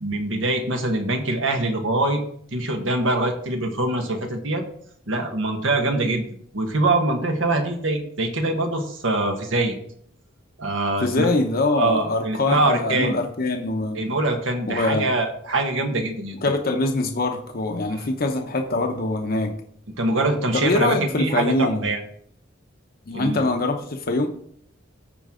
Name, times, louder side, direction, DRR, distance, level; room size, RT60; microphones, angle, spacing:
voice 1, 0.0-2.2 2.5-4.6 5.1-6.2 6.5-9.7 10.6-11.3 11.7-13.1 13.9-16.4 17.9-18.1 20.0-22.0 23.1-23.4, right 2 dB, 80° right, 4 dB, 1.4 m, -23 dB
voice 2, 11.0-14.0 14.7-15.1 16.4-19.5 20.5-21.8 23.1-24.3, left 2 dB, 50° left, 4 dB, 0.8 m, -23 dB
13.5 x 4.5 x 3.8 m, 0.63 s
head